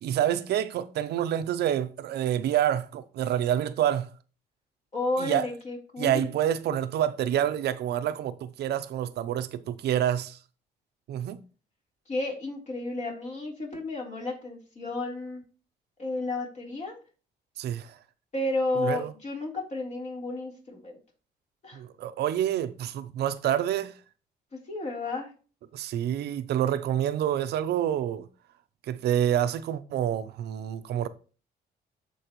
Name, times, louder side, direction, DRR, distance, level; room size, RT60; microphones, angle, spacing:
voice 1, 0.0-4.1 5.2-5.5 6.0-10.4 11.1-11.4 17.6-17.9 18.8-19.1 21.7-23.9 25.7-28.3 28.9-31.1, right 10 dB, 75° right, 0.6 m, -27 dB
voice 2, 4.9-6.3 12.1-15.4 16.0-17.0 18.3-21.0 21.6-21.8 24.7-25.3, left 2 dB, 45° left, 3.6 m, -32 dB
13.5 x 4.6 x 3.1 m
cardioid pair, 105°, 17 cm